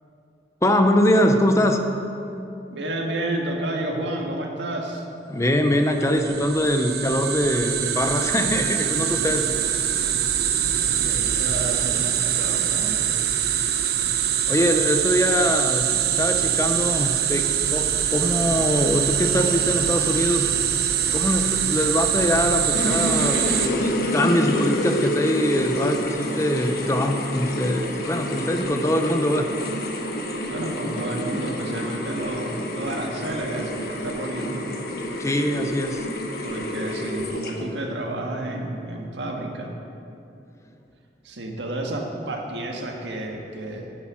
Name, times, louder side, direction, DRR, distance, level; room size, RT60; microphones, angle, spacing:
voice 1, 0.6-1.9 5.3-9.5 14.5-15.9 16.2-20.5 21.1-29.5 35.2-36.0, left 1 dB, 15° left, 5 dB, 0.6 m, -23 dB
voice 2, 2.7-5.0 10.9-13.2 30.5-34.7 36.4-39.7 41.2-43.9, right 1 dB, 85° right, 1 dB, 1.6 m, -31 dB
sound 1, 5.9-23.7, right 9 dB, 60° right, 0.7 m, -23 dB
sound 2, 22.7-37.8, left 1 dB, 55° left, 1.2 m, -28 dB
10.5 x 9.1 x 6.1 m, 2.7 s
head